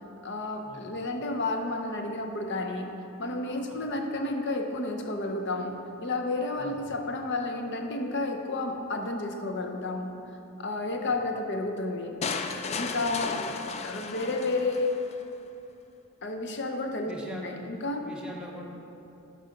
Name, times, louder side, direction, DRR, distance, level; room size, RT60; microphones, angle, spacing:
voice 1, 0.2-2.9 3.2-5.8 6.0-10.1 10.6-12.2 12.7-13.4 13.8-14.9 16.2-18.0, left 2 dB, 55° left, 4 dB, 0.7 m, -31 dB
sound 1, 12.2-15.2, left 5 dB, 30° left, 0.3 m, -34 dB
voice 2, 17.1-17.5 18.0-18.6, equal, 5° right, -3 dB, 0.8 m, -42 dB
6.6 x 5.5 x 5.1 m, 2.8 s
head